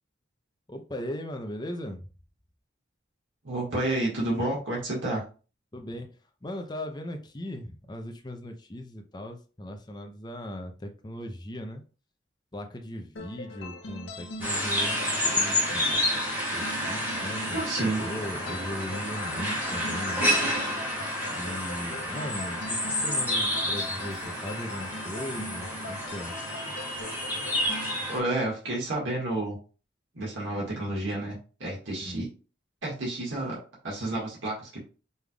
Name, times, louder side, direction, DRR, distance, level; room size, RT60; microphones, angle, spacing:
voice 1, 0.7-2.1 5.7-11.8 12.5-16.0 16.5-20.3 21.2-26.4 32.0-32.2, left 1 dB, 20° left, 4 dB, 0.6 m, -38 dB
voice 2, 3.4-5.2 17.5-18.0 28.1-29.6 30.1-32.3 32.8-33.6 33.8-34.8, right 2 dB, 80° right, -4 dB, 1.7 m, -30 dB
sound 1, 13.2-27.9, left 1 dB, 70° left, 0.7 m, -42 dB
sound 2, 14.4-28.2, equal, 10° right, 1.7 m, -29 dB
5.4 x 3.4 x 2.3 m, 0.35 s
head